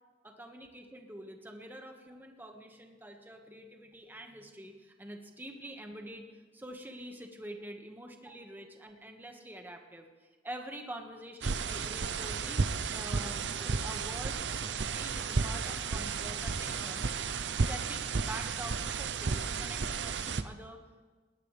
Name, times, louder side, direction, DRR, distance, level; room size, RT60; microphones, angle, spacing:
voice 1, 0.2-17.4 17.6-20.8, right 1 dB, 10° right, 3 dB, 1.6 m, -46 dB
sound 1, 11.4-20.4, right 5 dB, 85° right, 0.7 m, -33 dB
20.0 x 18.0 x 3.4 m, 1.4 s
head